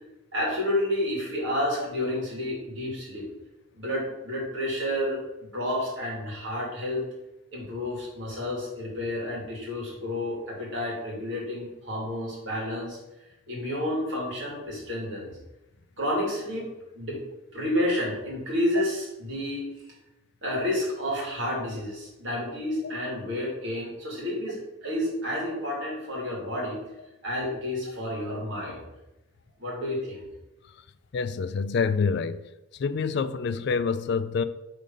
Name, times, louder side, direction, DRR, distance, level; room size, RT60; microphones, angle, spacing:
voice 1, 0.3-3.3 3.7-7.0 7.5-13.0 13.5-15.3 16.0-16.6 16.9-17.2 17.5-19.7 20.4-26.8 27.2-28.8 29.6-30.3, left 1 dB, 60° right, 2.3 m, -30 dB
voice 2, 31.1-32.4 32.8-34.4, left 5 dB, 50° left, 0.3 m, -26 dB
5.3 x 3.7 x 5.3 m
head